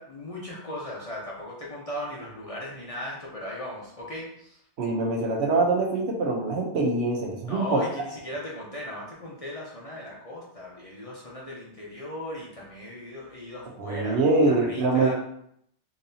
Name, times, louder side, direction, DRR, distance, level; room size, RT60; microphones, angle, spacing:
voice 1, 0.0-4.6 7.5-14.2 14.5-15.1, left 1 dB, 35° left, -4 dB, 0.7 m, -37 dB
voice 2, 4.8-7.8 13.8-15.1, right 3 dB, 70° right, 0 dB, 1.0 m, -24 dB
3.9 x 2.7 x 2.7 m, 0.71 s
omnidirectional pair, 1.2 m